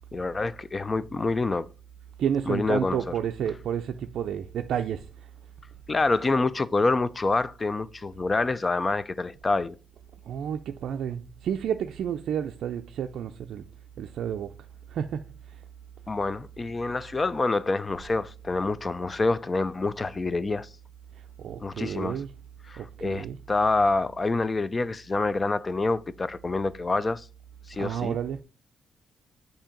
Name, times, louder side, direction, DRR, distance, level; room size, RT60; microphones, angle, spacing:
voice 1, 0.1-1.7 2.5-3.0 5.9-9.8 16.1-20.7 21.6-22.2 22.7-27.3 27.7-28.2, left 3 dB, 25° left, 0.3 m, -27 dB
voice 2, 2.2-5.3 10.2-13.7 14.0-14.5 14.9-15.6 21.1-22.3 22.7-23.4 27.7-28.4, right 9 dB, 75° right, 0.3 m, -31 dB
7.3 x 2.7 x 5.1 m
cardioid pair, 115°, 0 cm